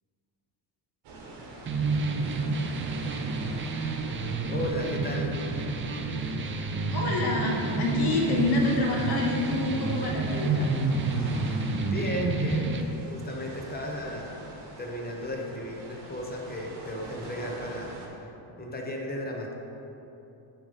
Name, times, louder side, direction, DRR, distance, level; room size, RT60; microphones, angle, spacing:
sound 1, 1.0-18.1, right 2 dB, 60° right, 1.2 m, -45 dB
sound 2, 1.7-12.8, right 3 dB, 30° right, 0.4 m, -29 dB
voice 1, 4.5-5.3 11.9-14.4 14.8-18.3 18.6-19.5, left 1 dB, 20° left, -1 dB, 0.9 m, -35 dB
voice 2, 6.9-10.7, left 2 dB, 55° left, -1 dB, 1.3 m, -27 dB
7.0 x 3.7 x 5.2 m, 3.0 s
cardioid pair, 120°, 46 cm